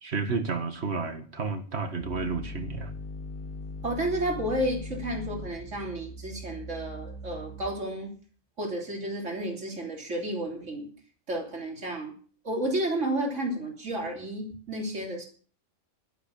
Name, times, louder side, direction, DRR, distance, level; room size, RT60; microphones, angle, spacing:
voice 1, 0.0-2.9, right 4 dB, 65° right, 8 dB, 2.0 m, -31 dB
sound 1, 2.0-8.0, left 2 dB, 10° left, 2.5 m, -40 dB
voice 2, 3.8-8.1 8.6-10.9 11.3-12.1 12.4-15.3, right 1 dB, 85° right, 1 dB, 3.5 m, -31 dB
11.5 x 11.5 x 7.0 m, 0.42 s
omnidirectional pair, 1.2 m